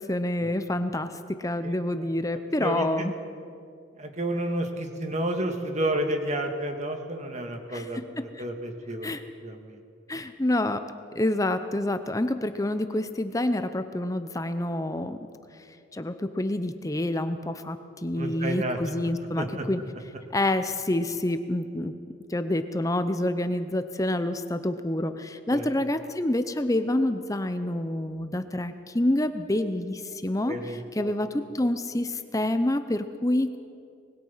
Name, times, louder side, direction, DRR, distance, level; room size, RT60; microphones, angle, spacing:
voice 1, 0.0-3.1 7.7-8.1 8.4-8.5 9.0-9.2 10.1-10.8 11.1-15.3 15.9-17.8 18.0-19.8 20.3-22.0 22.3-30.5 30.9-33.6, left 1 dB, 15° left, 10 dB, 0.7 m, -27 dB
voice 2, 1.6-2.1 2.6-3.1 4.0-9.2 9.4-9.8 18.1-19.1 19.4-19.7 25.5-25.7 30.5-31.1, right 1 dB, 35° right, 5 dB, 1.9 m, -31 dB
24.5 x 20.5 x 5.7 m, 2.4 s
head